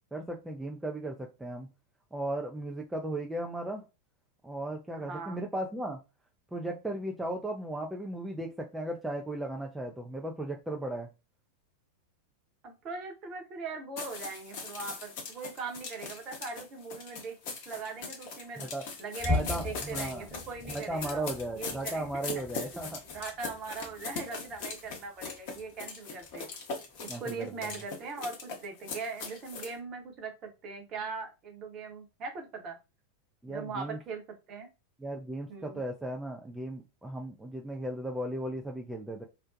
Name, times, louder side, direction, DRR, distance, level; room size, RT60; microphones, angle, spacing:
voice 1, 0.1-1.7 2.1-3.8 4.4-6.0 6.5-11.1 18.6-18.8 19.3-20.3 20.7-23.0 27.1-27.7 33.4-34.0 35.0-39.2, right 1 dB, 5° right, 0.3 m, -36 dB
voice 2, 5.0-5.4 12.6-18.7 19.0-22.8 23.1-26.5 27.0-32.8 33.5-34.2 34.5-34.7 35.5-35.8, right 4 dB, 35° right, 0.8 m, -40 dB
sound 1, 14.0-29.7, left 4 dB, 45° left, 0.7 m, -41 dB
sound 2, 19.2-25.9 26.2-26.5 26.9-27.1 27.6-27.8, left 2 dB, 10° left, 1.0 m, -39 dB
2.5 x 2.1 x 2.4 m
figure-of-eight pair, 90°, 0 cm